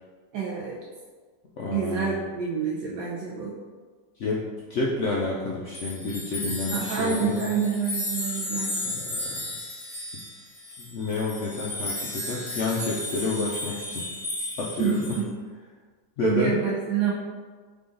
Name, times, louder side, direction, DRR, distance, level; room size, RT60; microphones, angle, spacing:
voice 1, 0.3-0.8 1.7-3.5 6.7-9.0 14.8-15.3 16.2-17.1, right 6 dB, 75° right, -4 dB, 1.2 m, -27 dB
voice 2, 1.6-2.3 4.2-4.4 4.7-7.5 9.0-9.2 9.4-9.5 10.8-14.1 14.6-15.0 16.2-16.5, left 3 dB, 75° left, -4 dB, 0.6 m, -29 dB
sound 1, 5.7-15.2, left 1 dB, 30° left, 1.3 m, -34 dB
3.8 x 3.8 x 3.7 m, 1.5 s
omnidirectional pair, 1.9 m